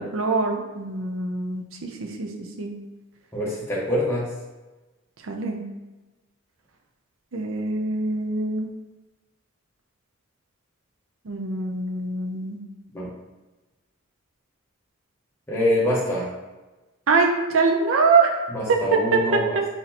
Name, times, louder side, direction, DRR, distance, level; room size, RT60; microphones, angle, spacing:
voice 1, 0.0-2.3 2.6-2.7 5.2-5.6 7.3-8.7 11.3-12.6 17.1-18.3 18.7-19.4, right 4 dB, 80° right, 2 dB, 0.6 m, -23 dB
voice 2, 3.3-4.3 12.9-13.1 15.5-16.3 18.5-19.7, left 1 dB, 15° left, -6 dB, 1.1 m, -25 dB
4.3 x 4.1 x 2.8 m, 1.1 s
head